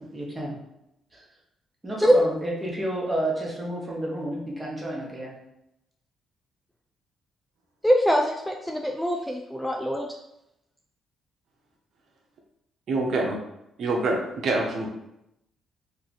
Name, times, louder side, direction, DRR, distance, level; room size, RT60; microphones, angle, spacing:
voice 1, 0.1-0.6 1.1-1.2 1.8-5.3, right 1 dB, 20° right, -3 dB, 1.1 m, -30 dB
voice 2, 7.8-10.1, equal, ahead, 0 dB, 0.3 m, -23 dB
voice 3, 12.9-13.4 13.8-14.9, right 2 dB, 65° right, 1 dB, 0.6 m, -25 dB
3.2 x 2.3 x 3.9 m, 0.85 s
cardioid pair, 90°, 0 cm